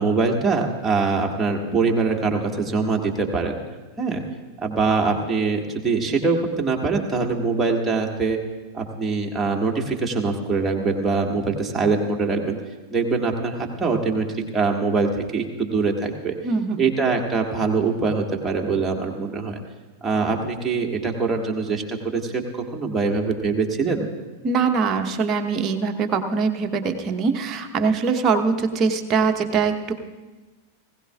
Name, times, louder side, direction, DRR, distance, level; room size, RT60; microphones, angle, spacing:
voice 1, 0.0-3.5 4.0-4.2 4.6-8.4 8.7-12.6 12.9-16.4 16.8-19.6 20.0-24.1, right 4 dB, 10° right, 0 dB, 1.8 m, -23 dB
voice 2, 16.4-16.9 24.4-29.9, right 5 dB, 30° right, 4 dB, 1.1 m, -22 dB
19.5 x 16.5 x 2.4 m, 1.2 s
figure-of-eight pair, 90°, 0 cm